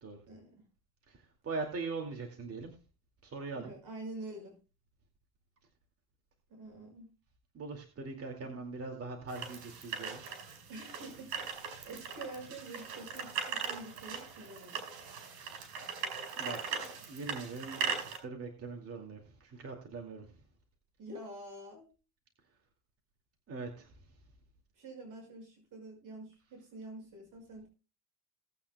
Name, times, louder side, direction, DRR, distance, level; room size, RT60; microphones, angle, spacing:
voice 1, 0.3-0.6 3.5-4.6 6.5-7.1 8.4-8.6 10.7-14.8 21.0-21.9 24.8-27.7, right 2 dB, 55° right, 1 dB, 6.2 m, -47 dB
voice 2, 1.1-2.7 3.2-3.7 7.5-10.2 15.3-15.4 16.4-20.2 23.5-23.9, right 3 dB, 35° right, 2 dB, 2.5 m, -41 dB
sound 1, 9.3-18.2, right 6 dB, 85° right, 5.3 m, -40 dB
19.0 x 8.8 x 2.3 m, 0.32 s
cardioid pair, 120°, 38 cm